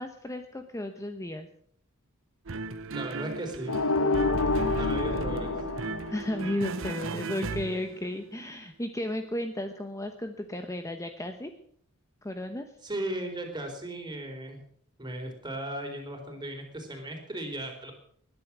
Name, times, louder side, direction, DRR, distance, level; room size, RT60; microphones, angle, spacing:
voice 1, 0.0-1.5 5.1-5.7 6.1-11.5 12.2-12.7, left 1 dB, 15° left, 6 dB, 1.1 m, -34 dB
sound 1, 2.5-8.2, right 3 dB, 65° right, 1.0 m, -35 dB
voice 2, 2.8-3.7 4.8-5.5 12.8-14.6 15.0-17.9, right 1 dB, 20° right, 3 dB, 4.0 m, -36 dB
sound 2, 3.7-6.7, left 3 dB, 75° left, 1.1 m, -28 dB
20.5 x 11.0 x 6.2 m, 0.63 s
head